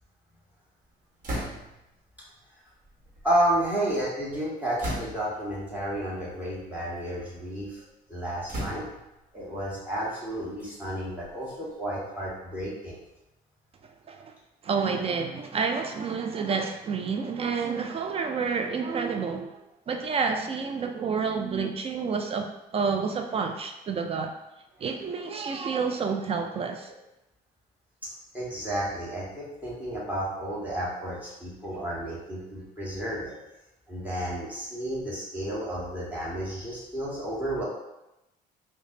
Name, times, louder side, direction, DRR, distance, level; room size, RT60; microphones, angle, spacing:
sound 1, 1.2-1.9 2.8-3.9 4.8-5.5 6.3-6.5 7.0-7.7 8.5-9.2 10.0-11.9, right 1 dB, 50° right, 1.1 m, -37 dB
voice 1, 3.2-7.8 8.1-8.9 9.3-13.0 28.3-33.3 33.9-37.6, right 1 dB, 10° right, -6 dB, 1.3 m, -31 dB
voice 2, 14.6-19.5 19.9-24.3 24.8-26.9, right 5 dB, 35° right, 5 dB, 0.3 m, -29 dB
5.0 x 2.1 x 2.7 m, 0.92 s
cardioid pair, 110°, 17 cm